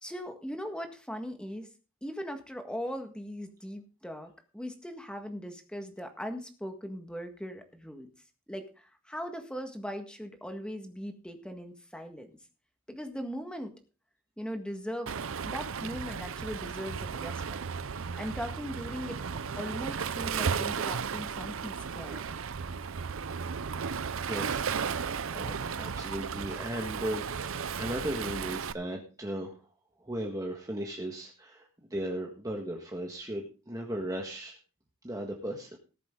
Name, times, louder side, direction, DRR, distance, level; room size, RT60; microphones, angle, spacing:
voice 1, 0.0-1.7 2.0-8.1 8.5-12.3 12.9-13.7 14.4-17.6 18.2-19.2 19.6-22.2, equal, 5° left, 5 dB, 1.7 m, -39 dB
Waves surf, 15.1-28.7, right 6 dB, 70° right, 0.6 m, -34 dB
voice 2, 24.2-29.7 30.0-34.6 35.0-35.8, right 1 dB, 15° right, 1 dB, 1.6 m, -37 dB
18.5 x 7.5 x 3.8 m, 0.35 s
head